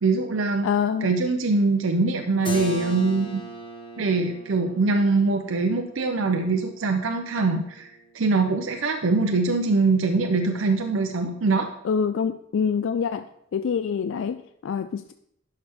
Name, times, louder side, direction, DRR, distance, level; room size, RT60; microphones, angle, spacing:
voice 1, 0.0-0.7 1.0-3.4 4.0-7.9 8.1-11.7, right 3 dB, 65° right, 5 dB, 0.6 m, -23 dB
voice 2, 0.6-1.1 11.8-13.3 13.5-15.1, left 6 dB, 65° left, 10 dB, 0.3 m, -26 dB
Keyboard (musical), 2.4-8.0, equal, 25° left, 1.3 m, -37 dB
11.0 x 5.7 x 3.5 m, 0.76 s
head